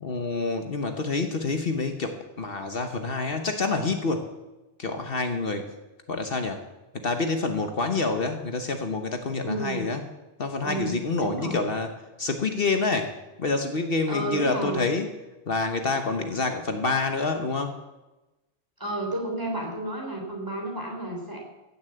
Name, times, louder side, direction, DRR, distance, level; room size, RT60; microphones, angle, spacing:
voice 1, 0.0-4.2 4.8-5.7 6.1-6.6 7.0-10.0 10.4-11.9 12.2-13.1 13.4-15.1 15.5-17.7, left 3 dB, 60° left, 6 dB, 1.2 m, -27 dB
voice 2, 9.4-9.9 10.6-11.7 14.1-14.9 18.8-21.4, right 1 dB, 20° right, 0 dB, 3.4 m, -31 dB
16.0 x 7.3 x 7.9 m, 1.0 s
omnidirectional pair, 1.1 m